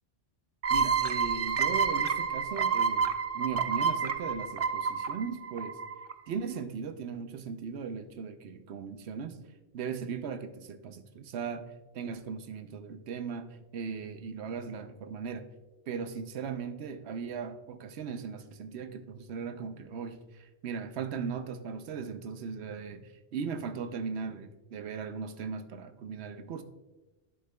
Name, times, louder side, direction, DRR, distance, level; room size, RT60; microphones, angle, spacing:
sound 1, 0.6-6.1, right 5 dB, 60° right, 0.4 m, -29 dB
voice 1, 0.7-3.1 3.3-5.8 6.3-9.4 9.7-11.6 11.9-15.4 15.9-26.6, right 6 dB, 75° right, 9 dB, 0.9 m, -38 dB
10.0 x 7.7 x 2.2 m, 1.1 s
omnidirectional pair, 1.1 m